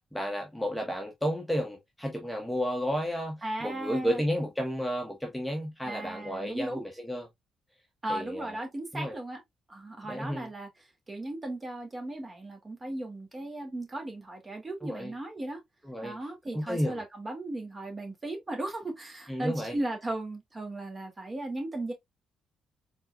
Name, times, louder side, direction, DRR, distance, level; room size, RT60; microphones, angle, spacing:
voice 1, 0.1-7.3 8.1-8.5 8.9-9.2 10.1-10.5 14.8-15.1 15.8-16.2 16.5-17.0 19.3-19.7, equal, 5° left, 1.1 m, -32 dB
voice 2, 3.4-4.2 5.8-6.8 8.0-9.4 9.7-10.7 11.1-15.6 16.0-21.9, right 1 dB, 25° right, 2.2 m, -36 dB
4.4 x 3.8 x 2.3 m
cardioid pair, 90°, 0 cm